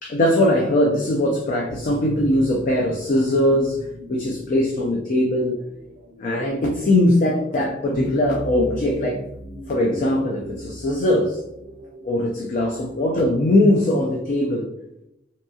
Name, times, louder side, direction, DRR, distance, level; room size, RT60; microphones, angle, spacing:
voice 1, 0.0-5.6 6.2-9.2 9.7-11.4 12.0-14.7, left 1 dB, 45° left, -1 dB, 0.4 m, -20 dB
sound 1, 0.9-13.0, right 1 dB, 60° right, 0.4 m, -39 dB
2.6 x 2.3 x 2.6 m, 0.84 s
head